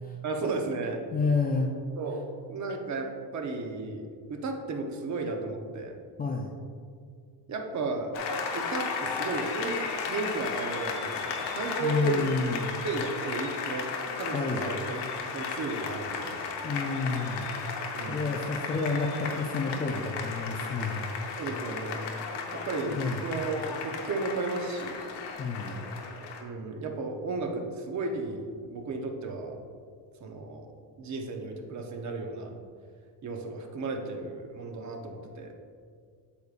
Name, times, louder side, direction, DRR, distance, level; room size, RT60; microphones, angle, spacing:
voice 1, 0.2-1.0 2.0-2.2 2.5-5.9 7.5-8.1 8.5-12.2 12.8-13.9 14.2-15.0 15.3-16.8 17.9-18.2 21.4-22.0 22.5-25.0 26.4-29.5 30.2-30.7 31.0-32.5 33.2-35.5, right 3 dB, 40° right, 3 dB, 0.8 m, -34 dB
voice 2, 1.1-1.7 6.2-6.5 11.8-12.7 14.3-14.7 16.6-17.5 18.1-21.4 22.9-23.2 25.4-25.8, left 4 dB, 20° left, 0 dB, 0.4 m, -30 dB
Applause, 8.1-26.4, left 5 dB, 60° left, 1.0 m, -35 dB
8.3 x 6.7 x 2.4 m, 2.1 s
cardioid pair, 140°, 46 cm